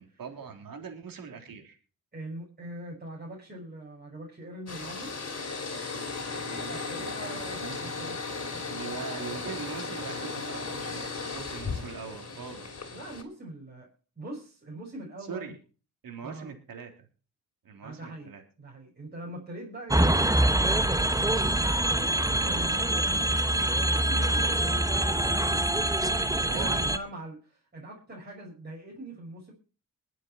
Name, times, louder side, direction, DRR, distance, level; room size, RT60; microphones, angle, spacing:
voice 1, 0.0-1.8 6.4-6.9 7.2-7.9 8.7-12.8 15.2-15.6 16.0-17.1 17.6-18.4 26.5-26.8, right 6 dB, 75° right, 4 dB, 3.6 m, -42 dB
voice 2, 2.1-5.2 6.7-8.4 8.7-8.8 10.7-10.8 12.9-13.9 14.2-15.5 16.2-16.5 17.8-18.3 18.6-21.4 22.3-25.7 26.3-29.5, right 1 dB, 30° right, -3 dB, 6.0 m, -42 dB
sound 1, 4.7-13.2, left 4 dB, 45° left, 2.9 m, -36 dB
sound 2, 19.9-27.0, right 1 dB, 10° right, 0.9 m, -25 dB
21.5 x 7.6 x 4.5 m, 0.37 s
cardioid pair, 65°, 35 cm